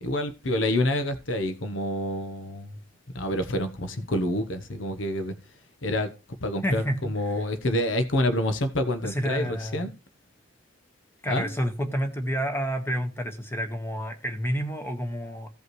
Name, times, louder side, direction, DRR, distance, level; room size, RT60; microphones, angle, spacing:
voice 1, 0.0-2.8 3.1-5.3 5.8-6.1 6.4-9.9 11.3-11.5, left 1 dB, 75° left, 1.0 m, -27 dB
voice 2, 6.6-7.1 9.0-9.9 11.2-15.5, equal, 10° left, 1.2 m, -29 dB
16.0 x 5.4 x 3.1 m
head